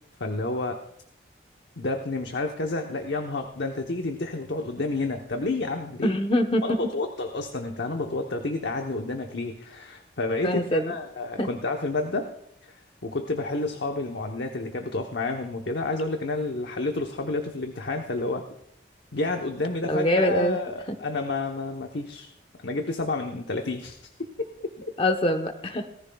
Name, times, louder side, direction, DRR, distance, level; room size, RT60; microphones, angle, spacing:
voice 1, 0.2-0.8 1.8-6.2 6.6-12.3 12.7-12.8 13.0-18.5 19.1-22.3 22.6-24.0 24.6-24.7, left 2 dB, 75° left, 4 dB, 1.0 m, -30 dB
voice 2, 6.0-6.8 10.4-10.9 11.4-11.5 19.8-20.6 20.9-21.0 25.0-25.9, left 1 dB, 30° left, 7 dB, 1.0 m, -24 dB
18.5 x 14.0 x 2.3 m, 0.74 s
head